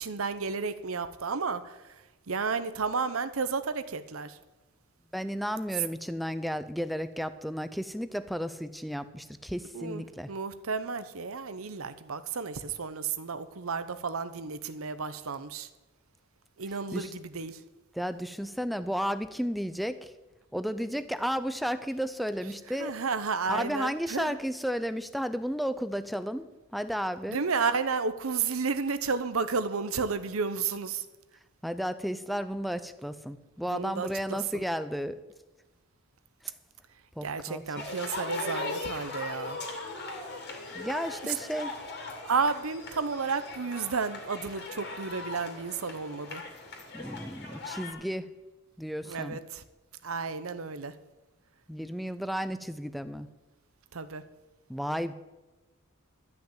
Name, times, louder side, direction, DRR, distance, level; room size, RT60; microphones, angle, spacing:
voice 1, 0.0-1.9 2.3-4.4 9.7-15.7 16.6-17.6 22.8-24.4 27.3-31.1 33.7-34.6 37.2-39.6 41.2-41.3 42.2-46.4 49.0-49.6 50.0-50.9 53.9-54.2, right 5 dB, 85° right, 12 dB, 0.9 m, -32 dB
voice 2, 5.1-10.3 16.7-17.1 17.9-20.1 20.5-23.0 23.5-26.5 26.7-27.5 31.6-35.2 36.4-36.5 37.2-37.9 40.7-41.7 46.9-48.3 48.8-49.4 51.7-53.3 54.7-55.1, equal, ahead, 12 dB, 0.5 m, -33 dB
sound 1, 37.7-47.9, left 3 dB, 50° left, 2.6 m, -39 dB
13.0 x 6.0 x 9.0 m, 1.1 s
head